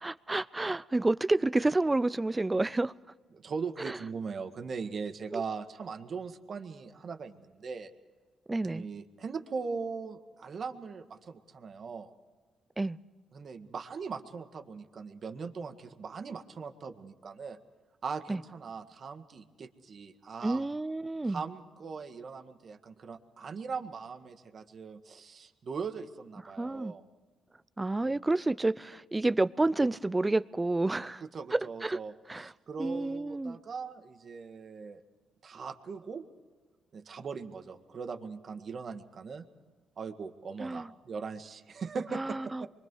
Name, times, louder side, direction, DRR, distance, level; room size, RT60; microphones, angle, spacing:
voice 1, 0.0-2.9 3.8-4.0 5.3-5.4 8.5-8.9 12.8-13.0 18.3-18.4 20.4-21.4 26.6-26.9 27.8-31.2 31.5-32.0 32.3-32.5 32.8-33.6 40.6-40.9 42.1-42.6, right 2 dB, 15° right, 0.6 m, -29 dB
voice 2, 3.3-7.9 8.6-12.1 13.3-17.6 18.0-20.7 21.3-27.0 31.3-35.0 35.4-36.2 36.9-39.5 40.0-42.7, right 5 dB, 50° right, 1.7 m, -40 dB
26.5 x 23.5 x 4.8 m
cardioid pair, 90°, 0 cm